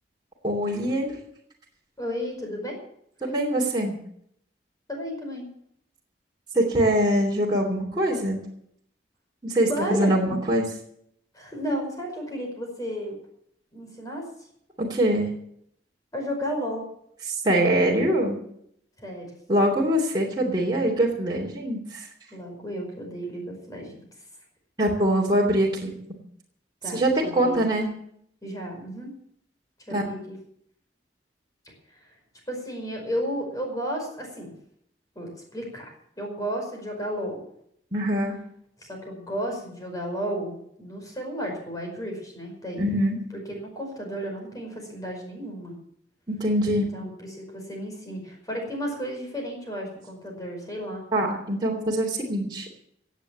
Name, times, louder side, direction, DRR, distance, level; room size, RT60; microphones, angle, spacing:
voice 1, 0.4-1.2 3.2-4.0 6.5-8.4 9.4-10.7 14.8-15.3 17.3-18.4 19.5-22.1 24.8-25.9 26.9-27.9 29.9-30.0 37.9-38.4 42.8-43.2 46.3-46.9 51.1-52.7, right 1 dB, 25° right, -3 dB, 2.9 m, -23 dB
voice 2, 2.0-2.7 4.9-5.4 9.7-10.2 11.3-13.1 13.7-14.2 16.1-16.9 19.0-19.2 22.3-23.9 26.8-27.6 28.4-29.1 29.9-30.3 32.0-32.1 32.5-34.5 35.1-35.9 36.2-37.4 38.8-42.8 43.3-45.7 46.9-51.0, equal, 20° left, 1 dB, 5.1 m, -33 dB
17.0 x 8.5 x 7.3 m, 0.70 s
head